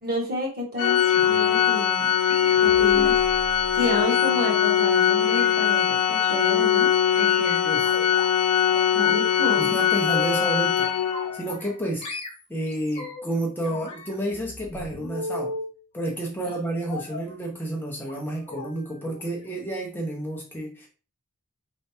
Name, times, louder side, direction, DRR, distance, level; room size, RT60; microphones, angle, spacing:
voice 1, 0.0-2.1 2.6-3.2 3.8-7.6 8.9-9.8, left 1 dB, 45° right, -3 dB, 1.7 m, -30 dB
Organ, 0.8-11.5, left 9 dB, 90° left, 0.5 m, -21 dB
sound 1, 1.0-1.6 2.2-4.7 5.2-5.5 6.2-6.5 7.2-8.3 8.7-9.2 9.5-10.7 11.1-11.7 12.0-13.3 13.6-15.7 16.9-17.3 18.0-18.2 18.5-18.7 19.0-19.2 19.5-19.6, left 1 dB, 30° left, 1.1 m, -36 dB
voice 2, 9.6-10.9 11.3-12.1 12.5-15.5 15.9-20.9, right 1 dB, 10° left, -2 dB, 0.7 m, -30 dB
4.4 x 3.3 x 2.8 m, 0.36 s
head